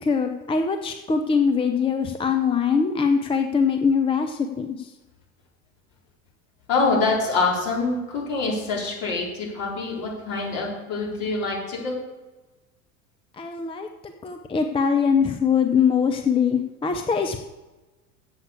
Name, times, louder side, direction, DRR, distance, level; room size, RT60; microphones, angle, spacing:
voice 1, 0.0-4.9 13.3-17.4, left 6 dB, 10° left, 5 dB, 0.7 m, -22 dB
voice 2, 6.7-11.9, left 3 dB, 50° left, -4 dB, 4.3 m, -25 dB
7.9 x 6.9 x 8.2 m, 1.1 s
figure-of-eight pair, 80°, 43 cm